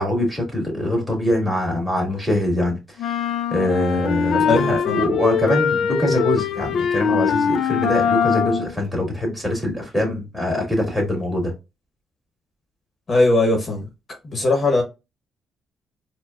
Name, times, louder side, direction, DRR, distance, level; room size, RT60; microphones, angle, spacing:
voice 1, 0.0-3.2 3.5-11.5, left 1 dB, 5° right, 2.1 m, -23 dB
sound 1, 3.0-8.7, left 7 dB, 70° left, 0.4 m, -22 dB
voice 2, 4.5-5.0 13.1-13.9 14.2-14.8, left 2 dB, 40° left, 1.0 m, -19 dB
4.3 x 2.2 x 2.3 m
cardioid pair, 90°, 0 cm